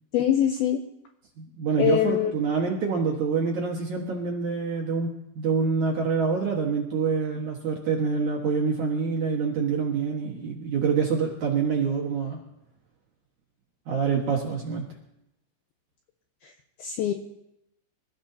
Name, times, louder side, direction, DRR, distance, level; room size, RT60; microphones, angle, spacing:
voice 1, 0.1-0.8 1.8-2.3 16.8-17.1, left 10 dB, 85° left, 4 dB, 2.2 m, -23 dB
voice 2, 1.4-12.4 13.9-14.8, right 5 dB, 60° right, -2 dB, 2.2 m, -26 dB
26.0 x 14.5 x 2.8 m, 0.82 s
omnidirectional pair, 5.3 m